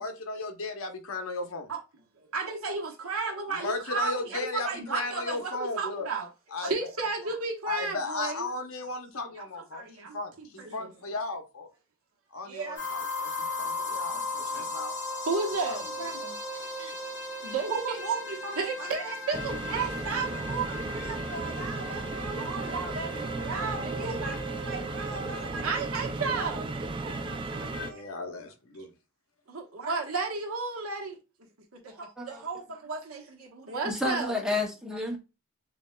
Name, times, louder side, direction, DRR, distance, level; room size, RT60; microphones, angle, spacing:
voice 1, 0.0-1.7 3.5-6.1 6.5-6.9 7.6-11.7 12.3-14.9 15.7-15.8 27.7-28.9, left 3 dB, 75° left, 0.9 m, -36 dB
voice 2, 2.3-6.3 6.6-8.6 9.3-10.9 12.4-12.8 13.4-14.7 15.3-16.4 16.7-17.1 17.4-28.3 29.5-31.2 31.7-34.4, right 4 dB, 85° right, 1.1 m, -34 dB
sound 1, 12.8-25.4, left 2 dB, 55° left, 2.4 m, -37 dB
sound 2, 19.3-27.9, right 2 dB, 25° right, 0.3 m, -35 dB
voice 3, 31.9-32.5 33.8-35.2, left 2 dB, 5° right, 0.7 m, -31 dB
6.7 x 2.3 x 2.2 m
head